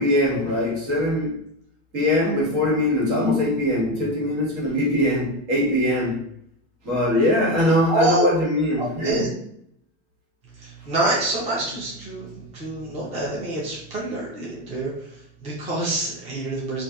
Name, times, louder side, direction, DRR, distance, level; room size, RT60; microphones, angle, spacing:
voice 1, 0.0-1.4 1.9-6.2 6.8-9.3, left 1 dB, 65° right, 1.4 m, -22 dB
voice 2, 7.9-8.3 9.0-9.3 10.5-16.8, right 2 dB, 20° right, 0.5 m, -26 dB
2.5 x 2.4 x 2.3 m
supercardioid pair, 145°, 35 cm